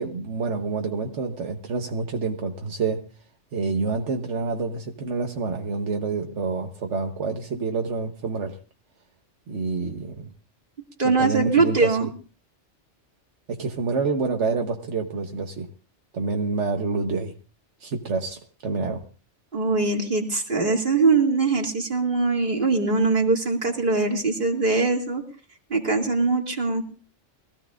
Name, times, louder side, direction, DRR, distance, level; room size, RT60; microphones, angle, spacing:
voice 1, 0.0-3.0 3.5-8.6 9.5-10.3 11.0-12.1 13.5-15.7 16.1-17.3 17.8-19.0, right 4 dB, 80° right, 3 dB, 1.5 m, -28 dB
voice 2, 11.0-12.1 19.5-25.2 25.7-26.8, right 3 dB, 45° right, 1 dB, 2.7 m, -22 dB
23.5 x 15.5 x 2.5 m, 0.37 s
omnidirectional pair, 1.2 m